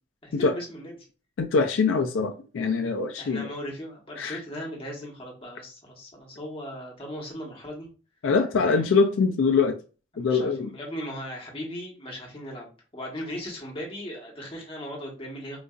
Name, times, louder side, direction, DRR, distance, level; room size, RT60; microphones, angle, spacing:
voice 1, 0.2-0.9 3.2-7.9 8.6-8.9 10.1-15.6, equal, 30° left, 1.1 m, -38 dB
voice 2, 1.4-3.5 4.2-4.4 8.2-9.8 10.2-10.7, left 4 dB, 80° left, 0.4 m, -23 dB
3.9 x 2.4 x 2.3 m
head